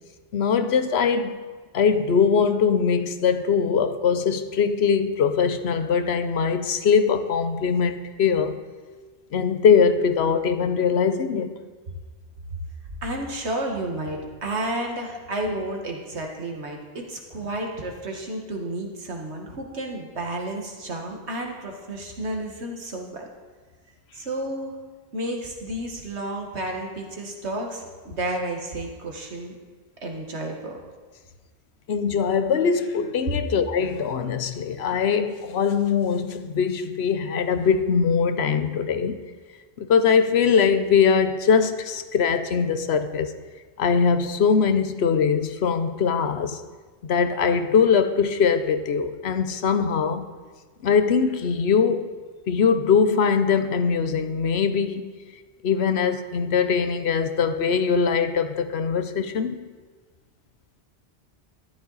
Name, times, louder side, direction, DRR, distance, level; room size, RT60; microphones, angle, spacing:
voice 1, 0.3-1.3 1.7-8.6 9.3-11.5 31.9-39.1 39.8-43.3 43.8-46.6 47.0-50.2 50.8-52.1 52.5-55.1 55.6-59.7, left 6 dB, 75° left, 1.0 m, -21 dB
voice 2, 13.0-23.3 24.1-24.7 25.1-29.6 30.0-30.8, right 1 dB, 85° right, 1.9 m, -31 dB
13.0 x 11.5 x 4.0 m
omnidirectional pair, 1.1 m